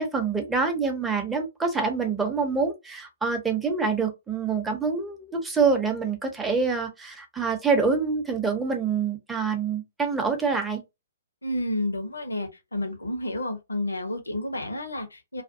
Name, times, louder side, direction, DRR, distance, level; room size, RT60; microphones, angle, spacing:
voice 1, 0.0-10.8, right 5 dB, 5° right, 0.6 m, -26 dB
voice 2, 11.4-15.4, left 1 dB, 80° left, 0.7 m, -30 dB
2.4 x 2.2 x 2.6 m
figure-of-eight pair, 125°, 0 cm